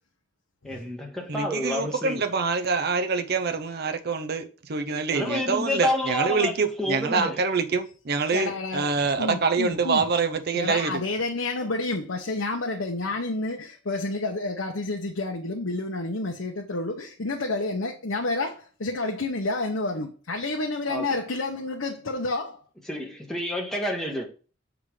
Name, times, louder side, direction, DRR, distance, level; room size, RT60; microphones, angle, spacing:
voice 1, 0.6-2.2 5.1-7.4 20.9-21.1 22.9-24.2, left 1 dB, 5° left, 1.5 m, -29 dB
voice 2, 1.3-11.0, right 4 dB, 55° right, 0.7 m, -26 dB
voice 3, 8.3-10.1 10.5-22.6, left 2 dB, 85° left, 1.0 m, -29 dB
6.9 x 3.8 x 4.9 m
head